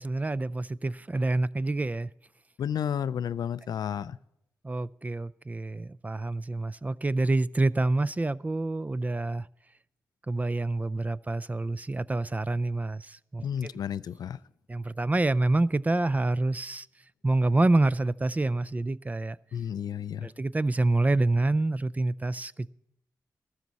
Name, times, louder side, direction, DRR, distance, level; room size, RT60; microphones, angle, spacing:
voice 1, 0.0-2.1 4.6-9.5 10.3-13.7 14.7-16.9 17.2-19.4 20.2-22.7, right 2 dB, 25° right, 0.4 m, -27 dB
voice 2, 2.6-4.2 13.4-14.4 19.5-20.3, left 8 dB, 80° left, 0.4 m, -32 dB
14.0 x 13.0 x 4.1 m
cardioid pair, 50°, 7 cm